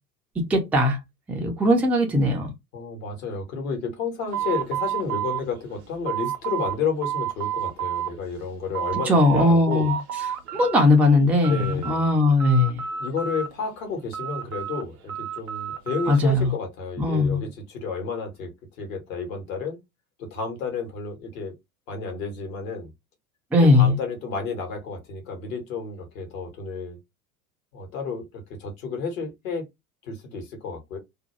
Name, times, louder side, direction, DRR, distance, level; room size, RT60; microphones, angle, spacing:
voice 1, 0.4-1.0 1.3-2.5 9.1-9.9 10.5-12.8 16.1-16.5 17.0-17.4 23.5-24.0, left 2 dB, 5° right, 0.4 m, -19 dB
voice 2, 2.7-9.9 11.4-12.3 13.0-19.8 20.2-21.6 21.9-22.9 23.6-27.0 27.7-29.7 30.0-31.0, left 5 dB, 60° left, 1.3 m, -31 dB
sound 1, 4.3-6.8 7.0-8.1 8.5-9.4 9.7-10.8 11.1-12.1 12.4-13.7 14.1-16.2, right 9 dB, 70° right, 0.7 m, -30 dB
2.6 x 2.2 x 3.0 m
figure-of-eight pair, 75°, 45 cm